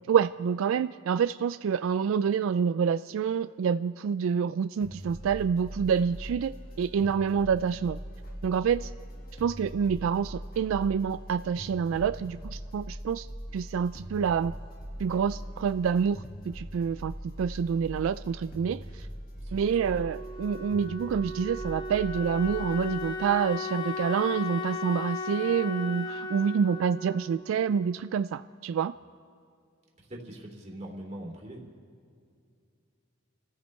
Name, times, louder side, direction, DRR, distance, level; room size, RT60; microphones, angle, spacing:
voice 1, 0.1-8.0 8.4-8.9 9.4-13.3 13.5-14.5 15.0-19.1 19.5-28.9, right 7 dB, 80° right, 13 dB, 0.3 m, -27 dB
sound 1, 4.8-23.1, equal, 45° left, 2.0 m, -42 dB
voice 2, 11.9-12.3 19.4-19.8 30.0-31.6, right 1 dB, 35° right, -1 dB, 2.7 m, -43 dB
Wind instrument woodwind instrument, 19.7-28.4, left 2 dB, 20° left, 0.8 m, -36 dB
29.0 x 14.5 x 3.2 m, 2.4 s
head